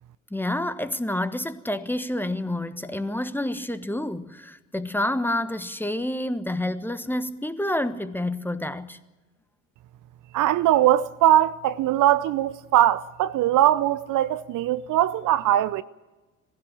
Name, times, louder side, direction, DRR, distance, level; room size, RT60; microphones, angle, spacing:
voice 1, 0.3-9.0, left 1 dB, 5° left, 1.2 m, -28 dB
voice 2, 10.3-15.8, right 12 dB, 45° right, 0.7 m, -21 dB
21.0 x 15.5 x 8.9 m
hypercardioid pair, 60°, 42 cm